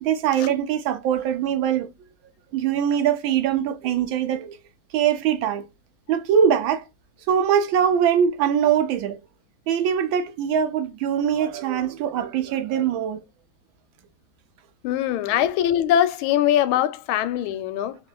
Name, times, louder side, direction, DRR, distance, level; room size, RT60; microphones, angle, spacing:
voice 1, 0.0-1.9 2.5-4.6 4.9-5.7 6.1-6.8 7.3-9.2 9.7-13.2 15.3-15.6 17.8-17.9, right 8 dB, 75° right, 1.3 m, -22 dB
voice 2, 14.8-18.0, left 11 dB, 85° left, 1.4 m, -22 dB
3.7 x 2.4 x 3.8 m
omnidirectional pair, 2.2 m